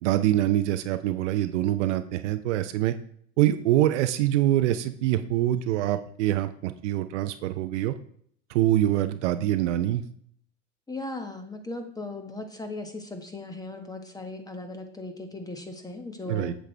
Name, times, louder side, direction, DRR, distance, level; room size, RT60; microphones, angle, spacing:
voice 1, 0.0-2.9 3.4-7.9 8.5-10.0 16.3-16.5, right 13 dB, 65° right, 11 dB, 0.7 m, -24 dB
voice 2, 10.9-16.6, left 2 dB, 10° left, 6 dB, 1.4 m, -37 dB
8.2 x 7.6 x 3.4 m, 0.62 s
hypercardioid pair, 90°, 38 cm